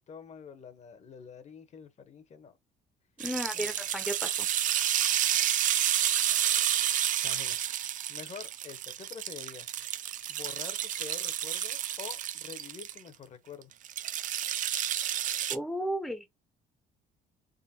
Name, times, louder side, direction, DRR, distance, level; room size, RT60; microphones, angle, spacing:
voice 1, 0.0-2.6 3.5-4.0 5.3-5.4 5.7-5.9 7.2-7.6 8.1-9.7 10.3-13.7, left 6 dB, 40° left, 0.9 m, -47 dB
voice 2, 3.2-4.5 15.5-16.3, equal, ahead, 0.7 m, -34 dB
sound 1, 3.2-13.0 13.8-15.6, right 11 dB, 50° right, 0.4 m, -30 dB
3.8 x 3.2 x 2.7 m
cardioid pair, 110°, 17 cm